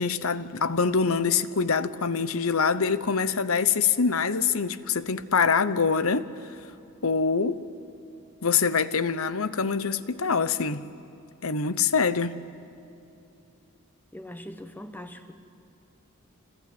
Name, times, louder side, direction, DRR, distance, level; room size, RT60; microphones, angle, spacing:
voice 1, 0.0-6.2 7.0-7.6 8.4-10.8 11.4-12.4, left 5 dB, 75° left, 1.0 m, -24 dB
voice 2, 14.1-15.3, left 1 dB, 10° left, 1.2 m, -41 dB
27.0 x 21.0 x 9.3 m
head